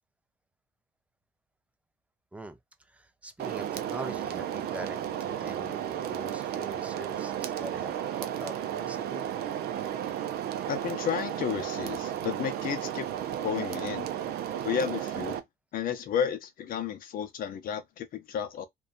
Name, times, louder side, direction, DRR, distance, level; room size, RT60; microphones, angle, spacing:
voice 1, 2.9-9.3, right 1 dB, 10° right, 0.4 m, -43 dB
sound 1, 3.4-15.4, right 10 dB, 70° right, 0.5 m, -33 dB
voice 2, 10.7-13.1 13.4-14.1 14.6-15.4 15.7-18.7, left 8 dB, 60° left, 0.6 m, -32 dB
2.7 x 2.3 x 2.4 m
cardioid pair, 110°, 17 cm